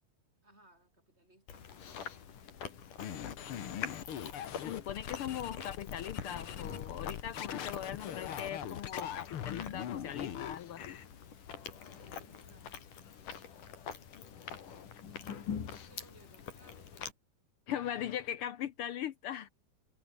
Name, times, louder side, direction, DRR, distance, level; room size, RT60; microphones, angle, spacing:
voice 1, 0.4-2.3 3.1-3.3 12.0-12.7 15.9-17.1, right 1 dB, 20° right, 6.6 m, -64 dB
Chewing mastication, 1.5-17.1, left 7 dB, 75° left, 4.5 m, -45 dB
sound 1, 3.0-11.0, left 9 dB, 50° left, 1.8 m, -41 dB
voice 2, 4.6-11.0 14.2-14.3 17.7-19.5, left 10 dB, 90° left, 1.2 m, -40 dB
omnidirectional pair, 3.7 m